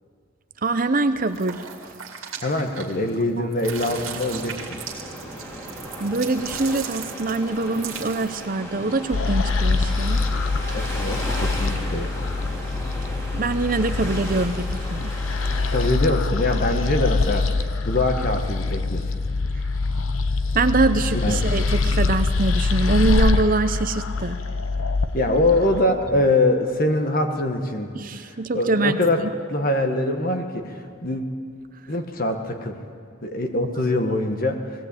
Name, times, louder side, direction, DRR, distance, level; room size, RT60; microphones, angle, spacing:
voice 1, 0.6-1.9 3.4-3.5 6.0-10.2 13.3-15.1 20.5-24.4 27.9-29.3, right 3 dB, 45° right, 10 dB, 0.8 m, -24 dB
sound 1, 1.3-3.2 3.5-8.5, right 8 dB, 90° right, 2.3 m, -38 dB
voice 2, 2.4-4.8 10.7-12.1 15.7-19.1 21.1-21.4 25.1-27.9 28.5-29.2 29.5-31.2 31.9-32.8 33.2-34.9, left 2 dB, 45° left, 5 dB, 1.5 m, -23 dB
sound 2, 3.6-15.9, equal, 15° left, 2.8 m, -36 dB
sound 3, 9.1-25.8, left 3 dB, 85° left, 1.0 m, -24 dB
19.0 x 16.5 x 8.5 m, 2.2 s
head